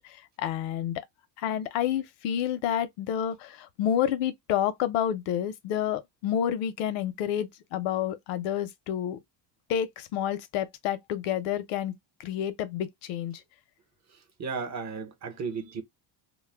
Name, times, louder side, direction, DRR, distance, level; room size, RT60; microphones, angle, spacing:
voice 1, 0.0-1.0 1.4-9.2 9.7-11.9 12.2-13.4, left 10 dB, 90° left, 0.7 m, -29 dB
voice 2, 14.4-15.8, right 5 dB, 35° right, 0.8 m, -34 dB
2.2 x 2.1 x 3.3 m
cardioid pair, 115°, 50 cm